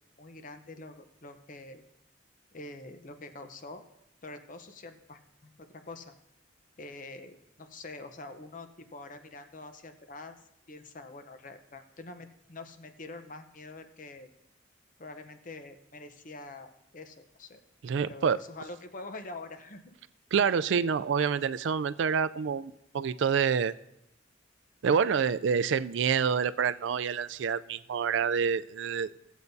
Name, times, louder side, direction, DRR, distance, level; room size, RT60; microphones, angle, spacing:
voice 1, 0.2-1.8 2.5-3.8 4.2-6.1 6.8-10.4 10.7-14.3 15.0-17.6 18.0-19.9, left 2 dB, 40° left, 8 dB, 0.7 m, -45 dB
voice 2, 17.8-18.4 20.3-23.7 24.8-29.1, right 6 dB, 65° right, 14 dB, 0.3 m, -27 dB
16.5 x 8.2 x 2.7 m, 0.83 s
head